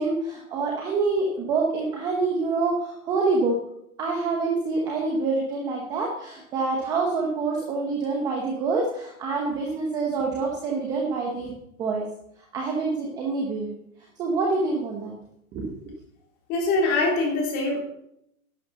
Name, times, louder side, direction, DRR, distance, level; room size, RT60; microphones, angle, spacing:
voice 1, 0.0-3.6 4.0-11.5 11.8-12.1 12.5-13.8 14.2-15.1 15.5-15.7, right 3 dB, 10° right, 0 dB, 0.8 m, -26 dB
voice 2, 16.5-17.8, left 2 dB, 20° left, -1 dB, 3.4 m, -23 dB
11.5 x 8.7 x 6.9 m, 0.74 s
hypercardioid pair, 170°, 43 cm